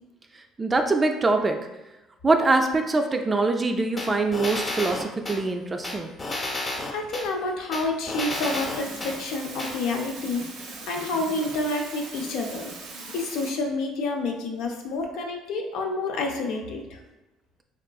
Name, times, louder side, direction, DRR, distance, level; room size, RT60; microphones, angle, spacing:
voice 1, 0.6-1.6 2.2-6.1, right 3 dB, 25° right, 5 dB, 0.3 m, -23 dB
sound 1, 4.0-5.4 5.8-7.3 7.7-9.1 9.6-9.7, left 2 dB, 30° left, 0.7 m, -31 dB
voice 2, 6.9-12.7 13.1-17.0, left 2 dB, 75° left, 2 dB, 0.5 m, -29 dB
sound 2, 8.3-13.5, right 3 dB, 70° right, 0.6 m, -40 dB
3.5 x 2.4 x 2.3 m, 1.0 s
supercardioid pair, 90°, 0 cm